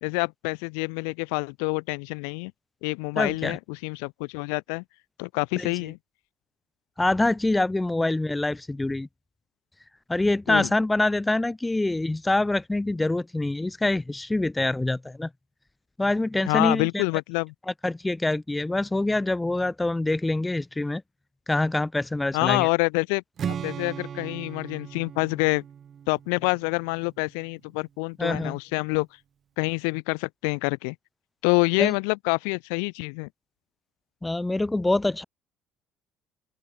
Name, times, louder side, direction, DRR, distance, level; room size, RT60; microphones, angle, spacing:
voice 1, 0.0-2.5 2.8-4.8 5.2-6.0 10.5-10.7 16.5-17.5 22.3-25.6 26.1-29.1 29.6-31.0 31.4-33.3, left 40 dB or more, 80° left, 0.4 m, -27 dB
voice 2, 3.2-3.6 5.6-5.7 7.0-9.1 10.1-15.3 16.0-17.0 17.8-21.0 21.5-22.7 28.2-28.6 31.8-31.9 34.2-35.2, left 2 dB, 15° left, 0.4 m, -25 dB
Strum, 23.4-27.5, right 8 dB, 50° right, 0.4 m, -37 dB
open air
hypercardioid pair, 65°, 0 cm